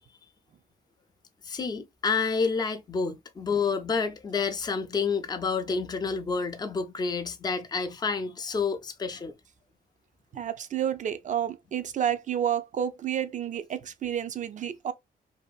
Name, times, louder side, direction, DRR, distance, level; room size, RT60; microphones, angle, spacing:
voice 1, 1.4-9.3, left 5 dB, 25° left, 0.4 m, -29 dB
voice 2, 10.3-14.9, right 9 dB, 50° right, 0.4 m, -30 dB
2.7 x 2.5 x 2.3 m
cardioid pair, 105°, 17 cm